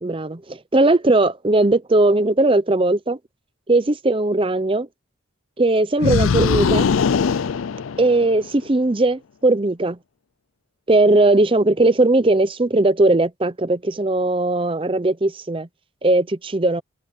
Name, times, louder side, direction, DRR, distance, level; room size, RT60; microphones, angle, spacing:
voice 1, 0.0-3.2 3.7-4.9 5.6-6.9 8.0-10.0 10.9-15.7 16.0-16.8, right 2 dB, 25° right, 0.6 m, -18 dB
sound 1, 6.0-8.5, left 5 dB, 70° left, 0.4 m, -20 dB
open air
head